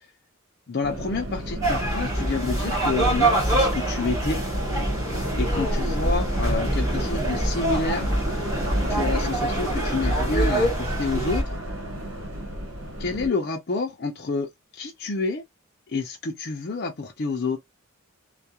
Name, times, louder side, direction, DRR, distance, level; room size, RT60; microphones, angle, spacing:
voice 1, 0.7-4.4 5.4-8.1 8.9-11.4 13.0-15.4 15.9-17.6, left 3 dB, 50° left, 0.5 m, -28 dB
sound 1, 0.8-13.3, right 1 dB, 75° right, 1.3 m, -32 dB
sound 2, 1.6-11.4, right 1 dB, 15° right, 1.1 m, -25 dB
2.3 x 2.2 x 2.8 m
head